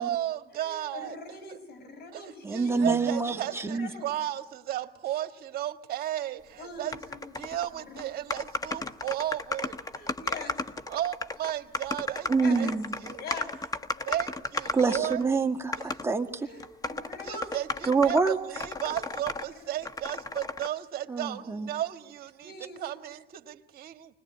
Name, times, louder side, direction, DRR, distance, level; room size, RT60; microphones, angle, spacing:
voice 1, 0.0-1.1 1.5-1.6 2.1-7.0 7.4-9.8 10.9-12.7 13.0-13.2 14.0-15.3 15.9-16.0 17.2-24.1, right 12 dB, 65° right, 8 dB, 1.6 m, -34 dB
voice 2, 0.5-3.2 3.5-4.1 5.1-5.2 6.6-8.1 8.8-8.9 9.9-10.5 12.3-12.9 13.2-14.2 14.6-15.0 16.4-17.5 18.8-19.0 19.5-19.9 22.4-23.0, left 3 dB, 70° left, 7 dB, 6.7 m, -44 dB
voice 3, 2.4-3.9 12.3-12.9 14.7-16.5 17.9-18.4 21.1-21.7, right 4 dB, 15° right, 4 dB, 1.7 m, -26 dB
sound 1, 6.9-7.7 8.0-8.1 8.3-15.3 15.7-16.1 16.6-19.5 19.8-20.7, left 3 dB, 20° left, 1.0 m, -34 dB
25.5 x 21.0 x 9.6 m, 1.1 s
cardioid pair, 110°, 17 cm